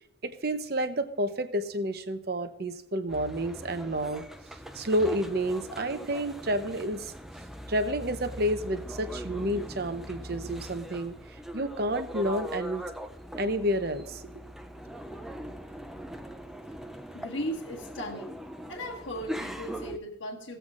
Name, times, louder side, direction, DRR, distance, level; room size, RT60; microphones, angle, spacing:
voice 1, 0.2-4.2 4.7-7.1 7.7-12.8 13.4-14.2, right 1 dB, 50° right, 9 dB, 0.8 m, -30 dB
sound 1, 3.1-20.0, equal, ahead, 0.4 m, -41 dB
voice 2, 17.1-18.4 18.7-20.6, equal, 75° left, 1 dB, 1.6 m, -37 dB
17.5 x 7.9 x 2.5 m, 0.75 s
head